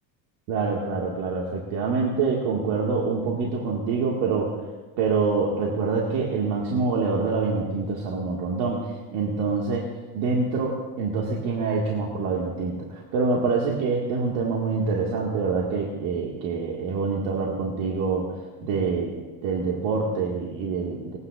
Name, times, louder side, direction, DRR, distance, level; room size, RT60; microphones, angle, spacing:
voice 1, 0.5-4.6 5.0-18.3 18.6-21.2, right 4 dB, 80° right, -3 dB, 2.1 m, -26 dB
28.0 x 9.6 x 2.5 m, 1.2 s
supercardioid pair, 105°, 45 cm